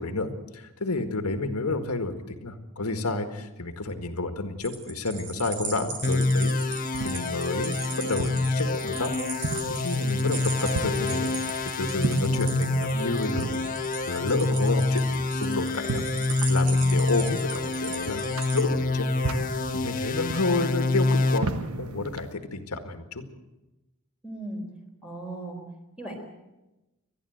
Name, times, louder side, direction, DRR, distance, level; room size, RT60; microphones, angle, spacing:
voice 1, 0.0-9.1 9.4-13.6 14.1-16.1 16.5-18.2 18.5-19.1 19.7-23.2, left 3 dB, 85° left, 6 dB, 1.9 m, -30 dB
sound 1, 4.6-18.6, right 4 dB, 50° right, 3.4 m, -39 dB
sound 2, 6.0-21.4, left 2 dB, 40° left, 1.4 m, -27 dB
sound 3, 6.4-22.3, right 3 dB, 75° right, 1.1 m, -37 dB
voice 2, 24.2-24.6 25.0-25.6 26.0-26.2, right 1 dB, 5° right, 1 dB, 4.2 m, -36 dB
29.5 x 11.5 x 8.0 m, 1.0 s
head